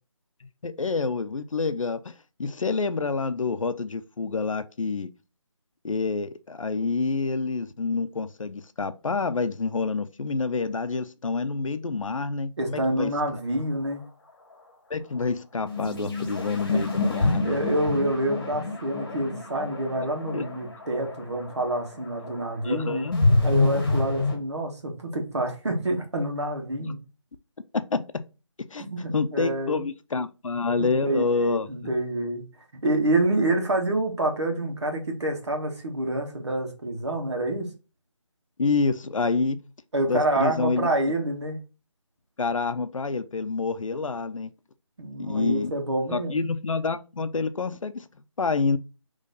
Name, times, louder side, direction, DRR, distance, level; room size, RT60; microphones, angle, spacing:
voice 1, 0.6-2.1 2.4-5.1 5.8-13.4 14.9-17.6 20.3-20.4 22.6-23.1 27.7-28.2 28.7-28.9 29.1-31.7 38.6-39.6 40.1-40.9 42.4-44.5 45.2-45.7 46.1-48.1 48.4-48.8, left 4 dB, 85° left, 0.6 m, -27 dB
voice 2, 12.6-14.0 16.7-16.8 17.2-23.0 23.4-27.0 28.8-29.8 30.7-32.4 32.8-37.7 39.9-41.6 45.0-46.4, right 1 dB, 60° right, 1.5 m, -27 dB
sound 1, 13.9-14.0 15.7-24.4, left 2 dB, 45° left, 1.2 m, -27 dB
4.0 x 3.1 x 3.8 m
figure-of-eight pair, 170°, 16 cm